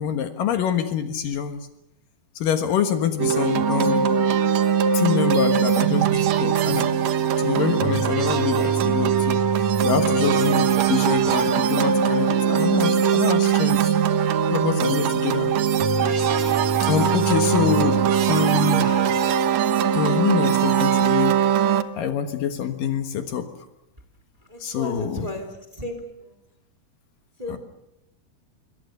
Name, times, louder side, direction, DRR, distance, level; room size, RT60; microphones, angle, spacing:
voice 1, 0.0-1.6 2.4-4.1 4.9-6.9 7.4-13.8 14.5-15.5 16.0-18.0 18.3-19.2 19.9-21.4 21.9-23.5 24.6-25.3 27.5-27.6, left 9 dB, 65° left, 7 dB, 2.9 m, -26 dB
sound 1, 3.2-21.8, right 8 dB, 65° right, 1.8 m, -21 dB
voice 2, 24.5-26.3 27.4-27.6, left 1 dB, 10° right, 7 dB, 2.8 m, -34 dB
27.0 x 23.5 x 6.7 m, 0.88 s
omnidirectional pair, 4.4 m